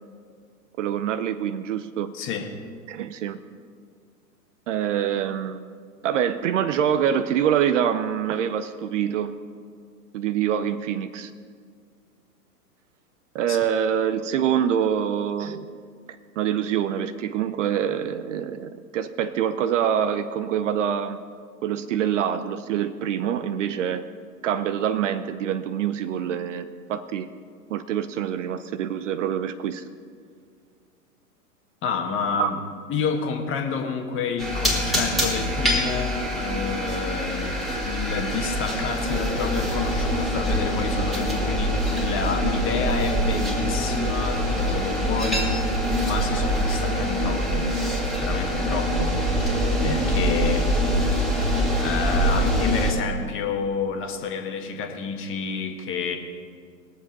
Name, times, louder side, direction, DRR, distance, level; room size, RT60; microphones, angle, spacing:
voice 1, 0.8-2.1 2.9-3.4 4.7-5.6 6.0-9.3 10.1-11.3 13.3-15.7 16.4-21.2 21.6-24.0 24.4-27.3 27.7-29.8 32.4-32.5, right 9 dB, 50° right, 12 dB, 0.6 m, -25 dB
voice 2, 2.1-2.5 13.5-13.6 31.8-32.6 32.9-37.6 37.8-45.5 46.0-47.7 48.2-49.1 49.8-50.7 51.8-56.2, left 5 dB, 25° left, 4 dB, 1.5 m, -29 dB
sound 1, 34.4-52.9, equal, ahead, 2.3 m, -24 dB
20.5 x 7.4 x 5.3 m, 2.1 s
figure-of-eight pair, 110°, 48 cm